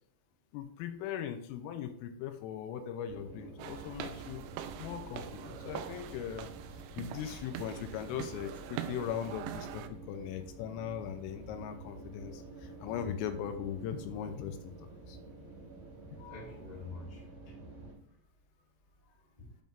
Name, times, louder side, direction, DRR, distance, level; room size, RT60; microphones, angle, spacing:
voice 1, 0.5-4.4 4.8-6.5 6.9-15.2, left 9 dB, 85° left, 8 dB, 3.2 m, -39 dB
sound 1, 3.1-17.9, right 2 dB, 35° right, 1.8 m, -49 dB
sound 2, 3.6-9.9, right 10 dB, 85° right, 2.7 m, -43 dB
voice 2, 15.9-17.6 18.1-18.2 19.0-19.6, left 3 dB, 25° left, -6 dB, 0.8 m, -49 dB
9.2 x 5.3 x 2.5 m, 0.67 s
omnidirectional pair, 6.0 m